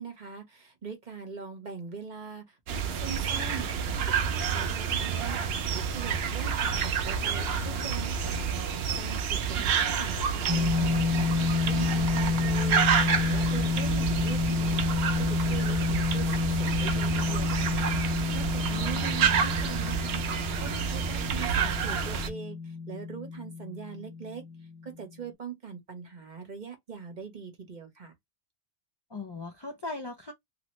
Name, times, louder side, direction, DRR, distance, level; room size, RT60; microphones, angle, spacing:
voice 1, 0.0-14.9 15.2-17.8 18.3-24.4 24.8-28.1, right 6 dB, 45° right, 1.1 m, -42 dB
sound 1, 2.7-22.3, right 6 dB, 65° right, 0.8 m, -29 dB
sound 2, 10.5-24.9, left 4 dB, 20° right, 0.9 m, -29 dB
voice 2, 18.7-19.1 29.1-30.3, left 3 dB, 35° left, 0.4 m, -39 dB
2.8 x 2.8 x 3.0 m
omnidirectional pair, 1.2 m